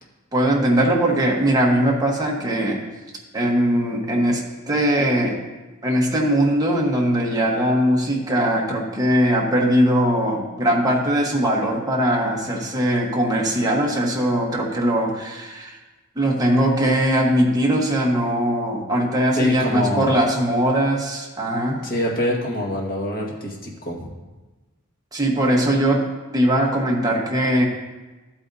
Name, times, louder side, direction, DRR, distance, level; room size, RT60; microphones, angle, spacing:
voice 1, 0.3-2.8 3.3-5.4 5.8-15.8 16.1-21.8 25.1-26.1 26.3-27.7, right 1 dB, 15° right, -2 dB, 1.2 m, -20 dB
voice 2, 19.3-20.2 21.8-24.1, left 1 dB, 45° left, -3 dB, 1.7 m, -25 dB
12.0 x 8.6 x 2.7 m, 1.2 s
head